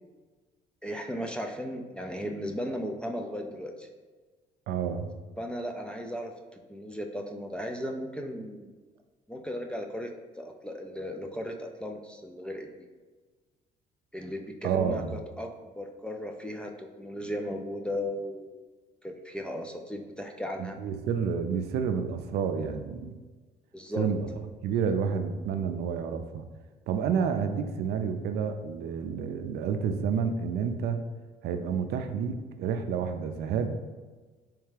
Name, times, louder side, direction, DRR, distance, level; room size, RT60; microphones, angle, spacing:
voice 1, 0.8-3.9 5.4-6.3 6.7-8.7 9.3-10.1 10.4-12.7 14.1-18.5 19.0-20.8 23.7-24.1, equal, 5° left, 3 dB, 0.3 m, -36 dB
voice 2, 4.7-5.1 14.6-15.1 20.6-23.1 24.0-24.3 24.6-26.4 26.9-31.0 31.4-33.8, right 6 dB, 70° right, 7 dB, 0.4 m, -29 dB
3.4 x 3.2 x 3.3 m, 1.3 s
cardioid pair, 110°, 17 cm